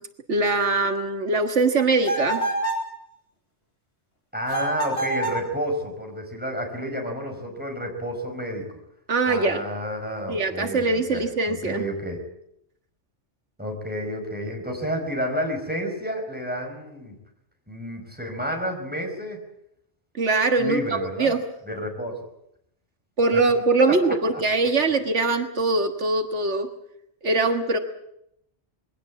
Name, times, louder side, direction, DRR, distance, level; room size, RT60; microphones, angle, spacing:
voice 1, 0.3-2.4 9.1-9.6 10.3-11.8 20.2-21.4 23.2-26.7 27.2-27.8, right 3 dB, 80° right, 6 dB, 1.8 m, -22 dB
sound 1, 2.0-2.9 4.5-5.5, right 1 dB, 55° left, 7.1 m, -26 dB
voice 2, 4.3-8.8 9.3-12.2 13.6-17.1 17.7-19.4 20.6-21.3 21.7-22.1 23.3-23.5 24.3-24.4, equal, 10° right, 2 dB, 5.1 m, -30 dB
22.0 x 17.0 x 8.4 m, 0.78 s
omnidirectional pair, 1.2 m